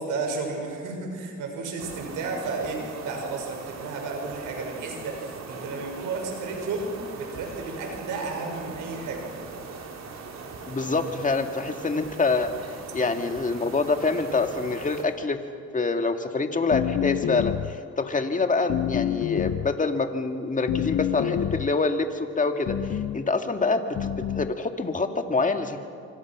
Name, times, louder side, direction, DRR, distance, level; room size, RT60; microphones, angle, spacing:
voice 1, 0.0-9.3, right 3 dB, 85° right, 2 dB, 6.3 m, -32 dB
sound 1, 1.8-15.0, right 4 dB, 60° right, 3.8 m, -40 dB
voice 2, 10.7-12.5 12.9-15.4 15.7-24.1 24.4-25.8, left 3 dB, 25° left, 6 dB, 2.1 m, -26 dB
sound 2, 16.7-17.8 18.7-19.8 20.7-21.8 22.7-23.2 24.0-24.5, left 11 dB, 50° left, 0.6 m, -27 dB
26.5 x 25.0 x 6.2 m, 2.3 s
cardioid pair, 90°, 30 cm